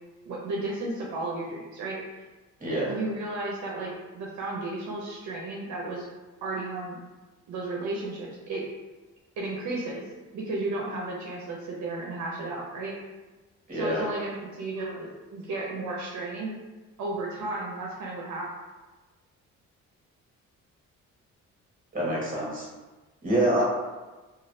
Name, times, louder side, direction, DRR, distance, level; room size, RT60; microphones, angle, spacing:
voice 1, 0.3-2.2 2.9-6.1 6.4-7.0 7.5-8.6 9.4-10.0 10.3-13.0 13.7-16.6 17.0-18.5, right 2 dB, 70° right, -3 dB, 0.6 m, -33 dB
voice 2, 2.6-2.9 13.7-14.0 21.9-22.7 23.2-23.6, right 1 dB, 30° right, -6 dB, 1.4 m, -26 dB
3.1 x 2.3 x 2.6 m, 1.2 s
cardioid pair, 90°, 30 cm